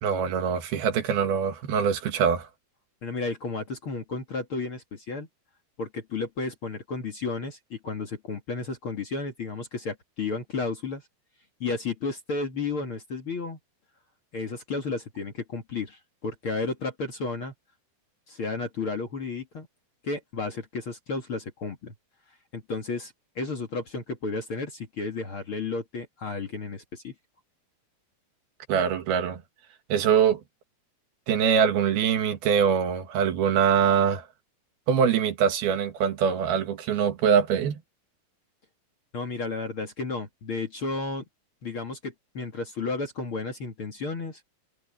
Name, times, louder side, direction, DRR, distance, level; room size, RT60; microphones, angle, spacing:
voice 1, 0.0-2.5 28.7-29.4 29.9-30.4 31.3-34.2 34.9-37.8, right 7 dB, 80° right, 3.8 m, -23 dB
voice 2, 3.0-5.3 5.8-11.0 11.6-13.6 14.3-17.5 18.3-19.7 20.0-21.9 22.5-27.1 39.1-41.3 41.6-44.4, left 3 dB, 45° left, 2.1 m, -32 dB
omnidirectional pair, 4.4 m